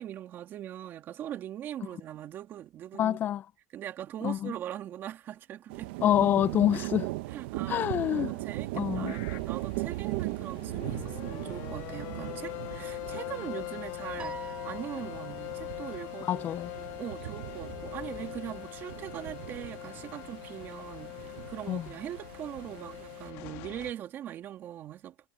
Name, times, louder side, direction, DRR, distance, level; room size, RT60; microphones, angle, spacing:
voice 1, 0.0-3.2 3.7-5.9 6.7-6.9 7.3-8.0 8.3-25.2, right 11 dB, 40° right, 2.6 m, -41 dB
voice 2, 3.0-3.4 4.2-4.5 6.0-7.1 7.7-8.3 8.7-9.1 16.3-16.7 21.7-21.8, left 11 dB, 35° left, 0.5 m, -26 dB
sound 1, 5.7-23.3, right 19 dB, 75° right, 1.0 m, -39 dB
sound 2, 9.1-23.9, left 21 dB, 60° left, 1.7 m, -42 dB
Piano, 14.2-15.7, right 5 dB, 20° right, 1.8 m, -45 dB
supercardioid pair, 135°, 6 cm